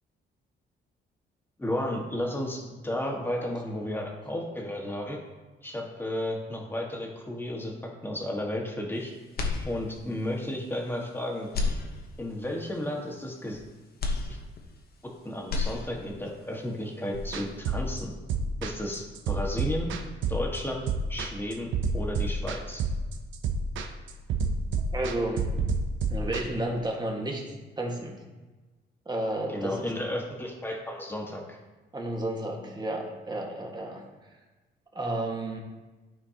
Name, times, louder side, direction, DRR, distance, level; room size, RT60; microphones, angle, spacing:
voice 1, 1.6-5.2 5.6-7.7 8.0-9.1 9.6-11.5 12.2-13.6 14.3-14.4 15.2-18.1 18.6-19.9 20.3-22.8 29.5-31.6, left 1 dB, 10° left, -1 dB, 1.6 m, -33 dB
sound 1, 9.3-10.2 10.7-10.8 11.4-12.5 14.0-15.1 15.4-16.3, left 3 dB, 50° left, 1.1 m, -32 dB
sound 2, 17.1-26.4, right 3 dB, 75° right, 0.7 m, -29 dB
voice 2, 24.9-25.6 26.1-27.4 27.8-28.2 29.0-29.9 31.9-34.0 34.9-35.6, right 1 dB, 20° right, 0 dB, 1.6 m, -32 dB
12.5 x 4.3 x 2.9 m, 1.2 s
cardioid pair, 90°, 20 cm